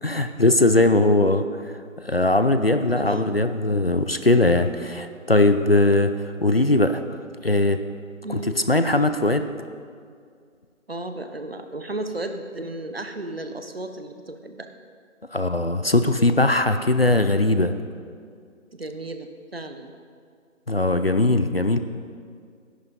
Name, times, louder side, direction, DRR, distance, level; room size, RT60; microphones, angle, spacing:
voice 1, 0.0-1.5 2.0-6.1 6.4-7.0 7.4-7.8 8.3-9.4 15.3-17.7 20.7-21.8, left 2 dB, 50° left, 9 dB, 0.5 m, -20 dB
voice 2, 2.9-3.4 8.2-8.6 10.9-14.7 18.7-19.9, right 2 dB, 50° right, 7 dB, 0.9 m, -34 dB
11.0 x 10.5 x 5.3 m, 2.2 s
figure-of-eight pair, 175°, 40 cm